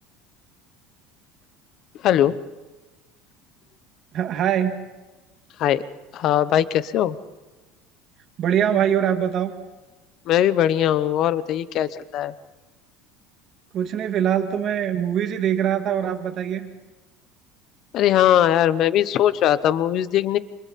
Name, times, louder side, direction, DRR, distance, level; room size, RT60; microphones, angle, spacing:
voice 1, 2.0-2.4 5.6-5.8 6.1-7.2 10.3-12.3 17.9-20.4, left 11 dB, 35° left, 16 dB, 0.9 m, -20 dB
voice 2, 4.1-4.7 8.4-9.5 13.7-16.7, right 9 dB, 30° right, 7 dB, 2.0 m, -23 dB
29.5 x 27.0 x 4.2 m, 1.2 s
cardioid pair, 180°, 0 cm